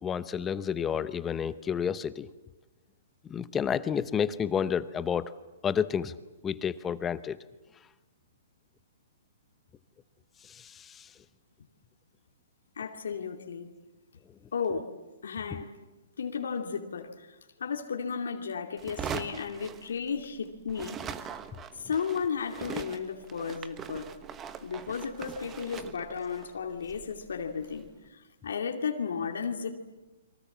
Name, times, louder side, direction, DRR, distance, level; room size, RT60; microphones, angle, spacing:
voice 1, 0.0-2.3 3.3-5.3 5.6-6.1 6.4-7.4 10.5-11.0, left 7 dB, 15° left, 14 dB, 0.8 m, -30 dB
voice 2, 12.8-13.7 14.5-14.9 15.2-15.7 16.2-17.3 17.6-21.0 21.7-24.1 24.6-29.7, left 6 dB, 80° left, 3 dB, 2.6 m, -34 dB
sound 1, 18.8-20.4 20.7-27.9, right 8 dB, 20° right, 1.2 m, -42 dB
30.0 x 24.0 x 7.4 m, 1.1 s
hypercardioid pair, 150°, 0 cm